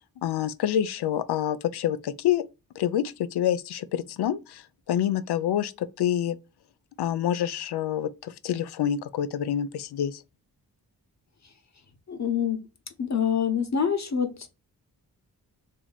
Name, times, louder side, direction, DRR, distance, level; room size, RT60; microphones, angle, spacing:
voice 1, 0.2-2.4 2.8-4.6 4.9-6.4 7.0-10.2, left 10 dB, 80° left, 0.5 m, -27 dB
voice 2, 12.1-12.6 13.0-14.5, left 7 dB, 45° left, 1.0 m, -26 dB
3.0 x 2.7 x 3.9 m
cardioid pair, 65°, 39 cm